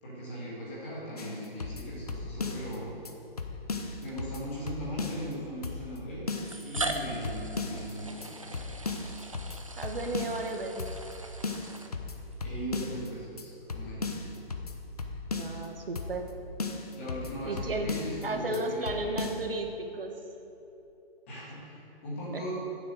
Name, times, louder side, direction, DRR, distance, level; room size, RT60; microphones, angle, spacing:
voice 1, 0.0-2.9 4.0-8.6 12.4-14.2 16.9-18.9 21.3-22.5, equal, 15° left, -7 dB, 1.7 m, -39 dB
sound 1, 1.2-2.8 3.1-3.2 3.4-5.3 5.6-6.0 6.3-7.9 8.2-8.3 8.5-10.5 10.8-11.2 11.4-13.1 13.4-13.5 13.7-15.7 16.0-16.3 16.6-18.3 18.5-18.6 18.9-19.4, left 3 dB, 40° left, 0.7 m, -36 dB
sound 2, 2.9-3.1 4.1-4.2 5.3-5.4 6.4-12.4, right 2 dB, 35° right, 0.5 m, -40 dB
voice 2, 9.8-10.9 15.3-16.2 17.4-17.9 18.2-20.1 22.3-22.4, right 2 dB, 65° right, 4 dB, 1.4 m, -34 dB
9.4 x 7.0 x 6.5 m, 3.0 s
hypercardioid pair, 175°, 31 cm